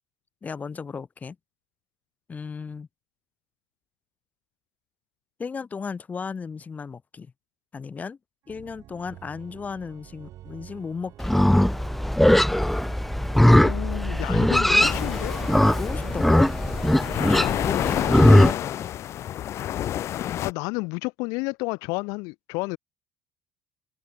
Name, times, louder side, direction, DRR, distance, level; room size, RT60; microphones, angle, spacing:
voice 1, 0.4-1.4 2.3-2.9 5.4-7.3 7.7-8.2 8.5-11.4 15.8-16.5 17.6-18.0 18.3-18.9, left 5 dB, 25° left, 2.1 m, -34 dB
Organ, 8.4-17.7, right 14 dB, 60° right, 1.7 m, -48 dB
Livestock farm animals working animals, 11.2-18.5, left 1 dB, 5° left, 0.4 m, -20 dB
voice 2, 13.5-15.4 18.3-18.6 20.4-22.8, left 28 dB, 90° left, 0.8 m, -31 dB
sound 1, 14.8-20.5, left 12 dB, 55° left, 1.0 m, -29 dB
cardioid pair, 115°, 6 cm